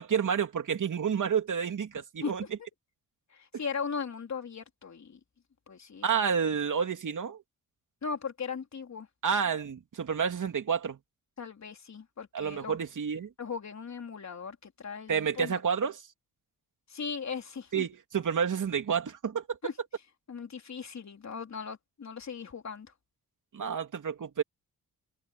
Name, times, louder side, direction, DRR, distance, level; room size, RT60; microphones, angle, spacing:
voice 1, 0.0-2.4 6.0-7.4 9.2-11.0 12.3-13.3 15.1-16.0 17.7-19.6 23.5-24.4, right 7 dB, 55° right, 3.0 m, -29 dB
voice 2, 2.2-2.5 3.3-5.2 5.7-6.2 8.0-9.1 11.4-12.8 13.4-15.6 16.9-17.9 19.6-19.7 20.3-22.9, left 5 dB, 50° left, 3.5 m, -38 dB
cardioid pair, 65°, 36 cm